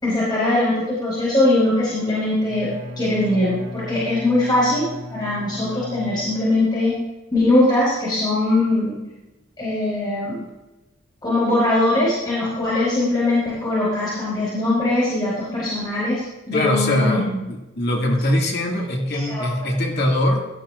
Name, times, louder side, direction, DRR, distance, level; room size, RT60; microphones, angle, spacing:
voice 1, 0.0-6.9 7.3-8.9 9.6-10.4 11.2-17.4 19.1-19.4, left 2 dB, 20° left, -8 dB, 5.3 m, -21 dB
Bowed string instrument, 2.4-6.6, left 1 dB, 75° right, 4.0 m, -36 dB
voice 2, 16.5-17.3 17.8-20.5, left 1 dB, 55° left, 0 dB, 2.2 m, -21 dB
17.0 x 13.0 x 2.5 m, 1.0 s
head